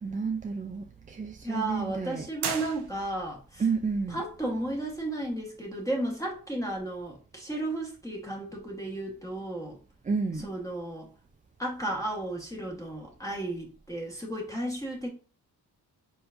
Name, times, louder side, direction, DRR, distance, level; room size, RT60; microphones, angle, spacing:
voice 1, 0.0-2.3 3.6-4.2 10.1-10.5, right 5 dB, 20° right, 0.3 m, -31 dB
voice 2, 1.4-3.7 4.1-9.8 10.4-11.1 11.6-15.1, right 1 dB, 10° left, 1.2 m, -34 dB
sound 1, 2.4-3.4, right 6 dB, 65° right, 0.9 m, -35 dB
4.4 x 4.0 x 2.5 m
cardioid pair, 80°, 41 cm